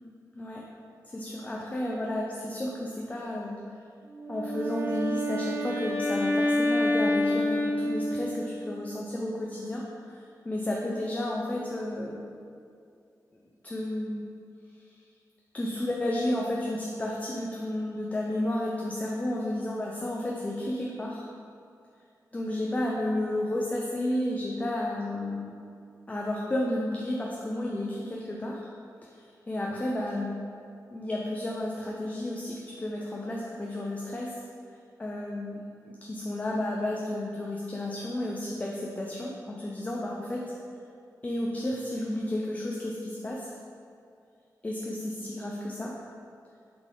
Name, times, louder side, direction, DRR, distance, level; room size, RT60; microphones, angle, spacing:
voice 1, 0.3-0.7 1.0-3.5 4.3-12.2 13.6-14.3 14.8-14.9 15.5-21.2 22.3-25.5 26.1-28.6 29.0-30.3 30.9-34.4 35.0-40.4 41.2-43.5 44.6-46.0, left 1 dB, 20° left, -2 dB, 0.5 m, -32 dB
Wind instrument woodwind instrument, 4.1-8.6, left 1 dB, 35° right, 1.0 m, -28 dB
8.0 x 4.0 x 3.8 m, 2.4 s
wide cardioid pair, 145°, 7 cm